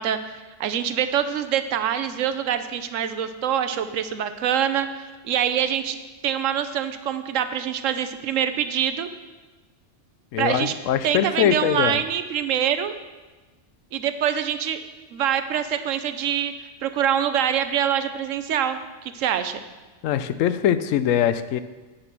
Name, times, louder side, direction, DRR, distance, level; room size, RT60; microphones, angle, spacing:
voice 1, 0.0-6.0 6.2-9.1 10.4-10.7 11.0-12.9 13.9-14.8 15.1-16.5 16.8-19.6, right 9 dB, 85° right, 11 dB, 1.0 m, -25 dB
voice 2, 10.3-12.0 20.0-21.6, left 10 dB, 90° left, 13 dB, 0.9 m, -22 dB
8.3 x 6.5 x 6.0 m, 1.2 s
omnidirectional pair, 1.3 m